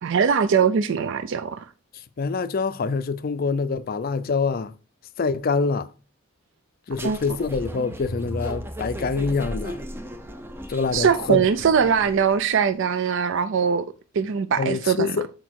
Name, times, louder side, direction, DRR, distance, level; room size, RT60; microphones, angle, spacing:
voice 1, 0.0-1.7 7.0-7.2 10.9-13.8 14.1-15.2, right 7 dB, 60° right, 0.4 m, -21 dB
voice 2, 2.2-4.7 5.2-5.9 6.9-9.8 10.7-11.5 14.6-15.3, left 4 dB, 45° left, 0.4 m, -25 dB
sound 1, 6.9-12.5, equal, 10° right, 0.6 m, -36 dB
6.3 x 4.4 x 4.6 m
head